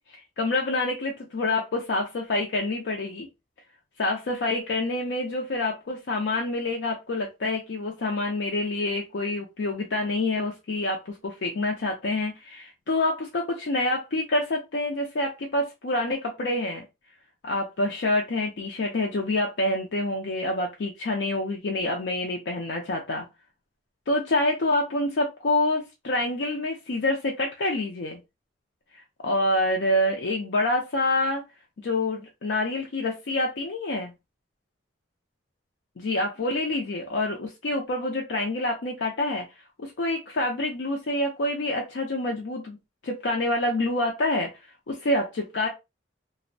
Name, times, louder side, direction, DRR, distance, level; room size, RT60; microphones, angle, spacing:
voice 1, 0.1-3.3 4.0-16.8 17.4-23.3 24.1-28.2 29.2-31.4 31.8-34.1 36.0-39.5 39.8-42.8 43.0-44.5 44.9-45.7, left 2 dB, 70° left, 0.5 m, -27 dB
2.6 x 2.1 x 2.5 m
head